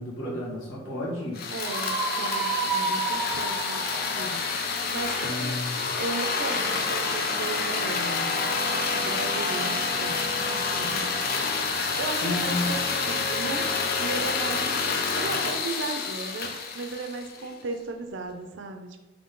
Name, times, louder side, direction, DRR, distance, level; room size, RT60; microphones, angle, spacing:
voice 1, 0.0-1.4 5.2-5.9 12.2-12.8, left 1 dB, 85° left, -5 dB, 1.4 m, -32 dB
sound 1, 1.3-17.5, left 4 dB, 50° left, 0.4 m, -28 dB
voice 2, 1.5-5.6 6.0-8.3 8.9-11.6 12.0-13.7 14.0-14.9 15.1-19.0, right 3 dB, 60° right, 5 dB, 0.4 m, -36 dB
Screaming, 1.6-4.6, right 4 dB, 30° left, 1.3 m, -30 dB
Cheering / Applause, 3.9-11.4, left 1 dB, 5° left, 1.0 m, -47 dB
3.6 x 2.9 x 3.8 m, 1.1 s
head